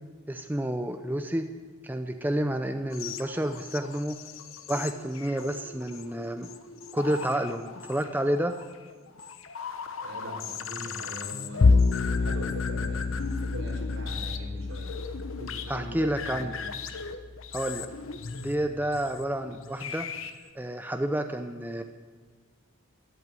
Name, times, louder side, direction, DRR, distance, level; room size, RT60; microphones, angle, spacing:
voice 1, 0.3-1.5 1.8-4.2 4.7-6.5 6.9-8.6 15.7-16.5 17.5-17.9 18.4-20.1 20.5-21.8, right 1 dB, 10° right, 6 dB, 0.6 m, -30 dB
sound 1, 2.9-20.5, left 6 dB, 70° left, 1.1 m, -39 dB
voice 2, 10.0-14.9 15.3-16.7, equal, 75° right, 0 dB, 5.1 m, -41 dB
Bowed string instrument, 11.6-18.0, left 4 dB, 50° left, 0.4 m, -28 dB
13.5 x 11.0 x 9.1 m, 1.5 s
head